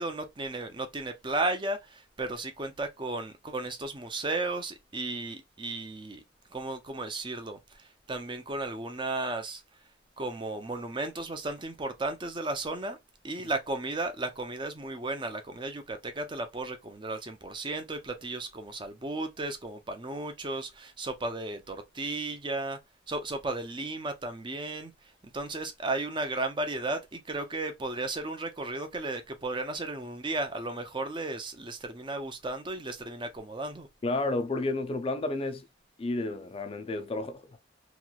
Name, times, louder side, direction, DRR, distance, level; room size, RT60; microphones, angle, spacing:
voice 1, 0.0-6.2 6.5-9.6 10.2-13.0 13.2-22.8 23.1-24.9 25.2-33.9, right 2 dB, 25° right, 0.5 m, -34 dB
voice 2, 34.0-35.7 36.0-37.6, left 2 dB, 30° left, 0.4 m, -31 dB
3.0 x 2.9 x 2.3 m
head